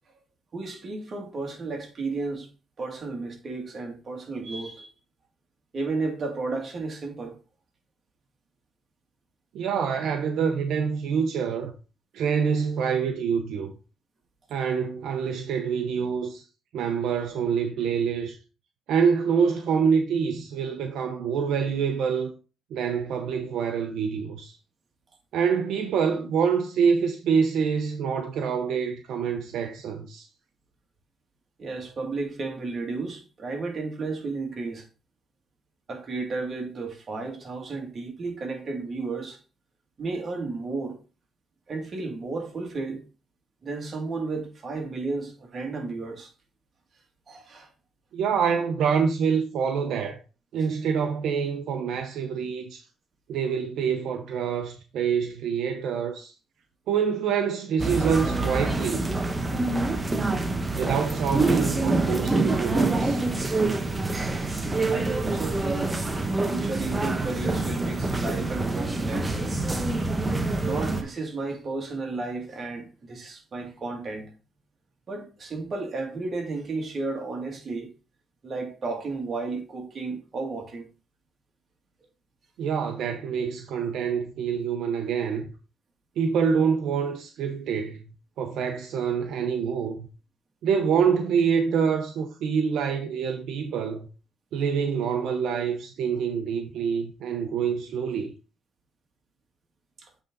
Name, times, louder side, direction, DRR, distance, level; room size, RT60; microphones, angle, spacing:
voice 1, 0.5-2.5 2.8-4.9 5.7-7.4 31.6-34.9 35.9-39.4 40.0-41.0 41.7-43.0 43.6-46.3 47.3-47.7 64.9-66.0 66.4-69.7 70.6-74.3 75.1-77.9 78.4-80.9 100.0-100.1, right 3 dB, 45° right, 2.4 m, -33 dB
voice 2, 9.5-11.7 12.1-13.7 14.5-16.4 16.7-18.4 18.9-22.3 22.7-24.6 25.3-30.3 48.1-50.2 50.5-52.8 53.3-56.3 56.9-59.1 60.8-63.3 82.6-85.5 86.2-88.0 88.4-90.1 90.6-94.1 94.5-98.3, right 6 dB, 80° right, 0.8 m, -26 dB
sound 1, 57.8-71.0, right 2 dB, 20° right, 1.1 m, -26 dB
8.1 x 3.9 x 3.9 m
cardioid pair, 90°, 0 cm